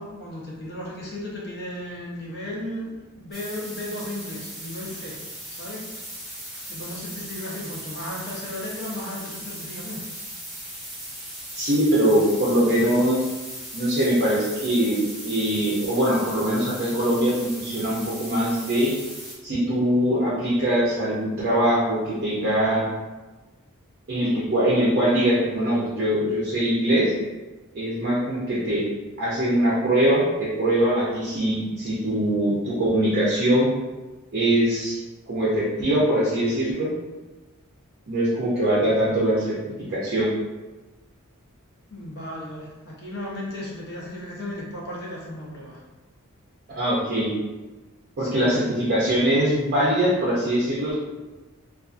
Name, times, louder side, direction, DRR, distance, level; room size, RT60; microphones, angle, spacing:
voice 1, 0.0-5.2 5.5-5.9 6.7-10.0 41.9-45.8 48.2-48.7, left 1 dB, 50° left, -3 dB, 0.7 m, -35 dB
sound 1, 3.3-19.4, right 1 dB, ahead, 0.7 m, -38 dB
voice 2, 11.5-13.2 13.7-18.9 19.4-22.9 24.1-27.1 27.7-28.8 29.2-33.7 34.3-35.0 35.3-36.9 38.1-40.3 46.8-47.3 48.2-50.9, right 1 dB, 45° right, -7 dB, 0.5 m, -22 dB
2.5 x 2.4 x 2.4 m, 1.2 s
head